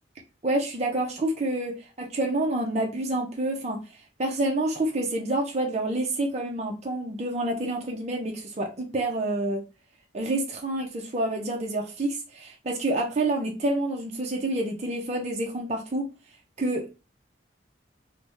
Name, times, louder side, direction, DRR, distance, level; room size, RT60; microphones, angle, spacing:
voice 1, 0.4-3.8 4.2-9.6 10.1-16.1 16.6-16.9, right 1 dB, 35° right, 1 dB, 0.5 m, -28 dB
3.3 x 2.1 x 2.9 m, 0.30 s
head